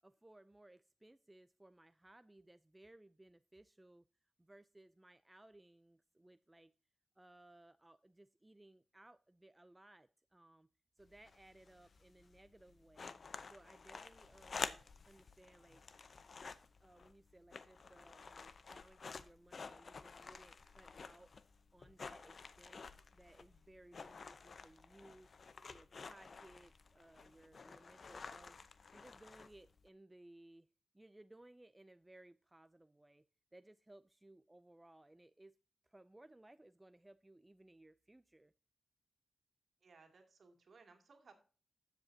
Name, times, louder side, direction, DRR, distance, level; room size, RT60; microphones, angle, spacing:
voice 1, 0.0-4.0 4.4-6.7 7.2-10.7 11.0-13.1 13.5-15.8 16.8-21.3 21.7-22.8 23.1-25.3 25.7-28.5 28.9-30.7 30.9-33.2 33.5-35.6 35.8-38.5, right 1 dB, 15° right, 12 dB, 0.3 m, -62 dB
sound 1, 11.0-29.9, left 4 dB, 45° left, 0.6 m, -51 dB
voice 2, 39.8-41.3, right 4 dB, 55° right, 4 dB, 2.4 m, -63 dB
13.0 x 8.0 x 2.7 m, 0.38 s
wide cardioid pair, 115°, 0 cm